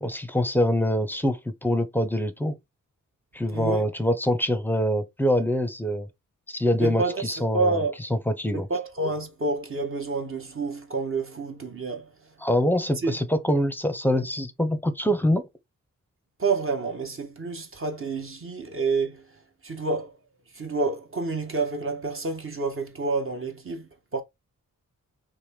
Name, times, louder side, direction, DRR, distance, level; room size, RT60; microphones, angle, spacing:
voice 1, 0.0-2.5 3.3-6.1 6.5-7.8 8.3-8.7 12.4-15.4, equal, 5° left, 0.6 m, -24 dB
voice 2, 3.5-3.8 6.8-7.9 8.5-12.1 13.0-13.2 16.4-19.3 19.6-20.1 20.5-24.2, right 3 dB, 40° right, 0.9 m, -28 dB
2.9 x 2.1 x 3.3 m
cardioid pair, 45°, 33 cm